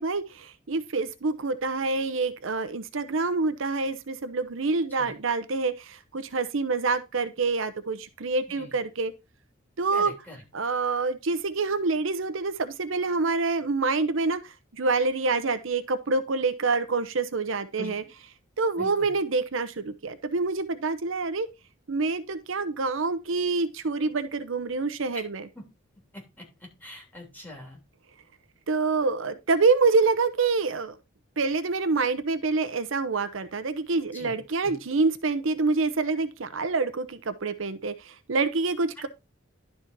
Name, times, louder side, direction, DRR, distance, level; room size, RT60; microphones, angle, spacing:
voice 1, 0.0-9.1 9.8-10.1 10.5-18.0 18.6-21.5 21.9-25.4 28.7-30.9 31.4-39.1, right 3 dB, 70° right, 0.8 m, -26 dB
voice 2, 9.9-10.4 17.8-18.1 18.7-19.1 25.1-25.2 25.5-25.6 26.1-27.8 34.1-34.8, left 1 dB, 10° left, 3.3 m, -43 dB
11.5 x 4.3 x 4.5 m
head